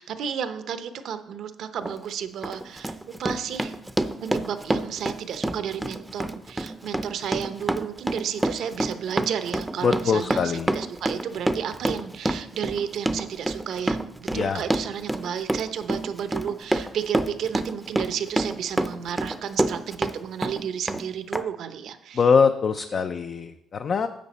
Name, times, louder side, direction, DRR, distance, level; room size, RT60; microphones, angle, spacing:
voice 1, 0.0-3.8 4.2-22.2 23.0-23.1, right 8 dB, 75° right, 10 dB, 0.8 m, -32 dB
Run, 1.8-2.0 2.4-20.2 20.4-21.0 21.3-21.4, right 1 dB, 10° right, 0.6 m, -27 dB
voice 2, 9.8-10.7 14.3-14.6 22.1-24.1, left 5 dB, 50° left, 8 dB, 0.5 m, -23 dB
10.5 x 7.5 x 4.2 m, 0.78 s
cardioid pair, 90°, 0 cm